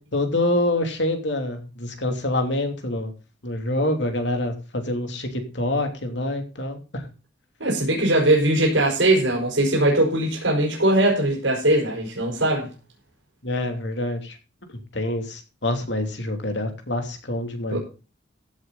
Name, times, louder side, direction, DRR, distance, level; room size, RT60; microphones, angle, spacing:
voice 1, 0.0-3.1 3.4-7.1 13.4-14.4 14.9-17.8, left 1 dB, 65° left, 5 dB, 3.0 m, -26 dB
voice 2, 7.6-12.7 17.7-17.8, right 1 dB, 85° right, -1 dB, 5.2 m, -20 dB
16.0 x 8.0 x 4.1 m, 0.33 s
head